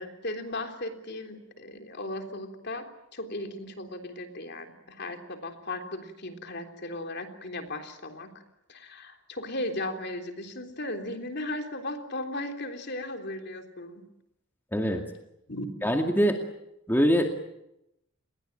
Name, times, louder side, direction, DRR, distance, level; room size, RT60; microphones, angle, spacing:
voice 1, 0.0-2.8 3.1-8.3 8.7-14.0 15.5-15.7, left 1 dB, 50° left, 5 dB, 3.5 m, -36 dB
voice 2, 14.7-15.0 15.8-16.4 16.9-17.4, equal, 10° left, 3 dB, 2.3 m, -23 dB
30.0 x 21.5 x 9.0 m, 0.85 s
head